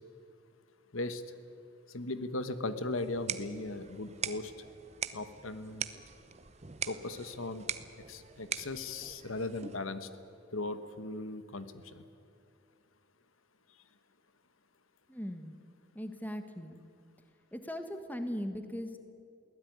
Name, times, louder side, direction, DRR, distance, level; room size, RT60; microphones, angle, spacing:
voice 1, 1.9-4.5 5.1-5.9 6.9-7.7 8.1-10.1 10.5-12.0, left 2 dB, 85° left, 11 dB, 1.4 m, -38 dB
sound 1, 3.0-9.9, right 8 dB, 30° right, 0.8 m, -42 dB
voice 2, 15.1-15.5 15.9-16.8 17.5-19.0, equal, 10° left, 8 dB, 1.4 m, -39 dB
23.0 x 17.0 x 9.5 m, 2.5 s
head